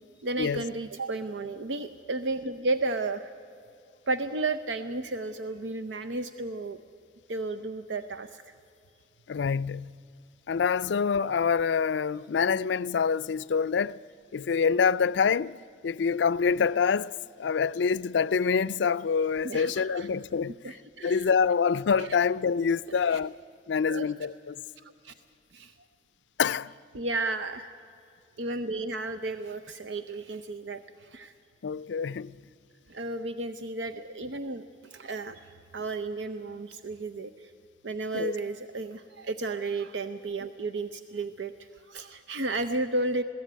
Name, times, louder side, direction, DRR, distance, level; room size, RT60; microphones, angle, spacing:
voice 1, 0.2-3.3 4.1-6.8 7.3-8.5 19.4-20.1 20.6-21.3 22.0-22.1 23.1-23.2 23.9-24.1 24.8-25.1 25.5-25.7 26.9-27.7 28.4-31.3 32.9-37.5 37.8-43.2, right 2 dB, 90° right, 0.7 m, -33 dB
voice 2, 9.3-10.0 10.5-14.0 14.3-20.8 21.0-23.3 23.7-24.6 26.4-26.7 31.6-32.4 38.1-38.3, left 6 dB, 75° left, 0.4 m, -26 dB
21.0 x 16.0 x 9.2 m
head